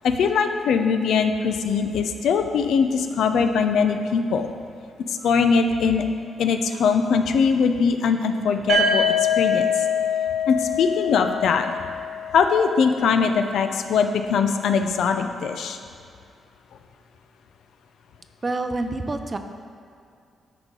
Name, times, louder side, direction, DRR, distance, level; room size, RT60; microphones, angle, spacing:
voice 1, 0.0-4.5 5.1-6.0 6.4-9.8 10.5-11.7 12.3-15.8, left 5 dB, 80° left, 7 dB, 0.5 m, -21 dB
sound 1, 8.7-12.6, left 4 dB, 85° right, 1.1 m, -24 dB
voice 2, 18.4-19.4, right 2 dB, 25° right, 7 dB, 0.5 m, -27 dB
10.0 x 4.9 x 3.8 m, 2.4 s
cardioid pair, 110°, 0 cm